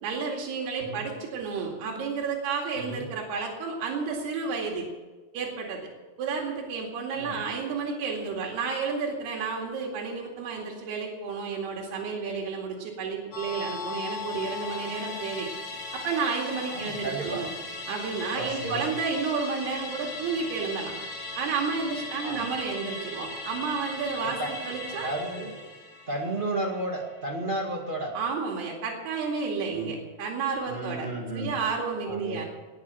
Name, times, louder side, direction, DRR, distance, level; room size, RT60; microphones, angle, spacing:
voice 1, 0.0-4.9 5.3-5.8 6.2-15.5 15.9-17.5 17.9-20.9 21.4-25.1 28.1-31.1 31.3-32.5, right 5 dB, 85° right, -1 dB, 4.3 m, -31 dB
Musical instrument, 13.3-28.0 28.3-28.4, left 3 dB, 50° left, 3.2 m, -38 dB
voice 2, 16.7-17.4 18.3-18.9 22.2-22.5 24.2-25.6 26.1-28.1 29.7-29.9 30.7-31.5 32.1-32.4, right 1 dB, 25° right, 1 dB, 1.1 m, -33 dB
18.5 x 8.6 x 7.6 m, 1.3 s
omnidirectional pair, 4.5 m